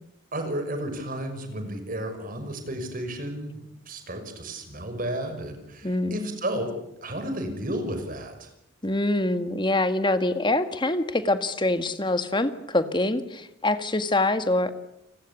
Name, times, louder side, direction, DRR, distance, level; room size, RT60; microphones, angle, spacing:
voice 1, 0.3-3.6 3.9-6.7 7.0-8.5, right 1 dB, 45° right, 7 dB, 6.0 m, -32 dB
voice 2, 5.8-6.2 8.8-14.7, left 2 dB, 25° left, 10 dB, 1.8 m, -25 dB
30.0 x 20.5 x 8.5 m, 0.83 s
head